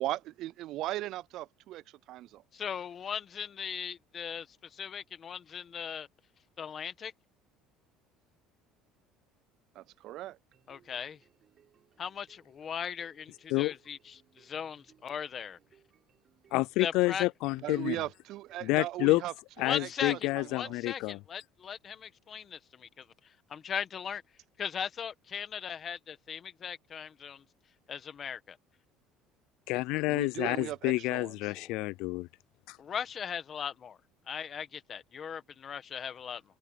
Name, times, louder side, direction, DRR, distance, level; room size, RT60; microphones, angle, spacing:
voice 1, 0.0-2.4 9.8-10.4 17.6-20.8 30.1-31.5, right 15 dB, 60° right, 0.5 m, -38 dB
voice 2, 2.5-6.1 6.6-7.1 10.7-11.2 12.0-15.6 16.8-17.3 19.6-24.2 24.6-27.4 27.9-28.6 31.5-31.7 32.8-34.0 34.3-36.4, left 7 dB, 35° left, 1.4 m, -38 dB
sound 1, 10.5-18.8, right 9 dB, 40° right, 6.9 m, -66 dB
voice 3, 16.5-18.0 18.6-19.2 19.6-21.2 29.7-32.3 32.7-32.8, left 21 dB, 70° left, 0.3 m, -29 dB
cardioid pair, 130°, 0 cm